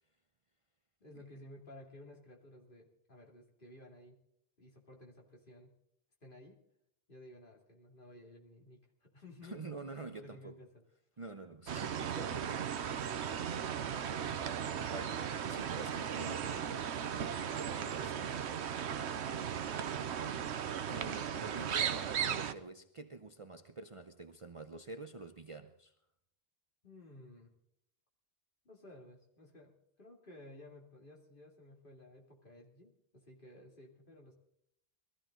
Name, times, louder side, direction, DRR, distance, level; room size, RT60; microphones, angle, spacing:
voice 1, 1.0-4.2 4.6-5.7 6.2-6.6 7.1-9.7 10.1-10.8 14.3-15.3 26.8-27.5 28.6-34.3, left 1 dB, 50° left, 2.9 m, -55 dB
voice 2, 9.4-10.6 11.2-12.7 14.9-15.1 15.5-18.4 20.9-25.9, right 3 dB, 35° right, 0.7 m, -47 dB
sound 1, 11.7-22.5, right 8 dB, 80° right, 1.0 m, -37 dB
21.5 x 14.0 x 3.8 m
omnidirectional pair, 1.1 m